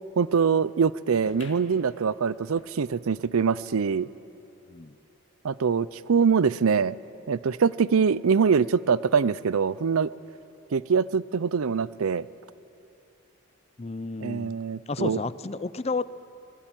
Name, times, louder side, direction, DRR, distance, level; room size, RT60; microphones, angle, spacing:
voice 1, 0.2-4.1 5.4-6.9 7.3-10.1 10.7-12.3 14.2-15.2, right 6 dB, 80° right, 18 dB, 0.5 m, -24 dB
sound 1, 1.3-4.2 4.7-4.8 5.0-5.1 5.8-5.9, left 3 dB, 60° left, 2.1 m, -52 dB
voice 2, 13.8-14.6 14.9-16.1, left 3 dB, 30° left, 16 dB, 0.5 m, -31 dB
25.0 x 19.5 x 9.1 m, 2.7 s
head